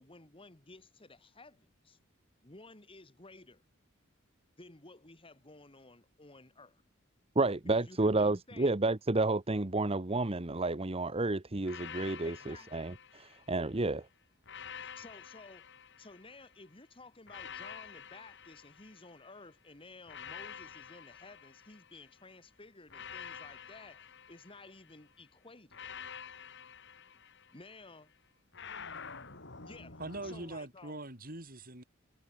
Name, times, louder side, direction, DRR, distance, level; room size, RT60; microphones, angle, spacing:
voice 1, 0.0-2.0 2.4-3.6 4.6-6.8 7.7-8.7 12.2-12.7 15.0-15.7 16.0-25.8 27.5-28.1 29.6-31.0, left 3 dB, 25° left, 2.5 m, -54 dB
voice 2, 7.3-14.1, right 2 dB, 30° right, 1.0 m, -31 dB
sound 1, 11.6-13.8 14.4-16.6 17.3-19.4 20.1-22.2 22.9-25.0 25.7-27.9 28.5-30.6, left 7 dB, 60° left, 4.6 m, -48 dB
voice 3, 30.0-31.8, right 2 dB, 45° right, 7.5 m, -42 dB
head